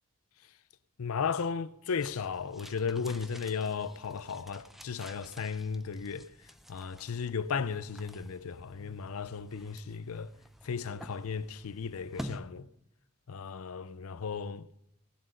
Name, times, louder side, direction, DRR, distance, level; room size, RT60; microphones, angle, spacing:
voice 1, 1.0-6.3 6.7-10.3 10.6-12.7 13.3-14.7, left 5 dB, 80° left, 0.5 m, -35 dB
sound 1, 2.0-12.4, equal, ahead, 0.6 m, -49 dB
19.5 x 7.6 x 5.1 m
head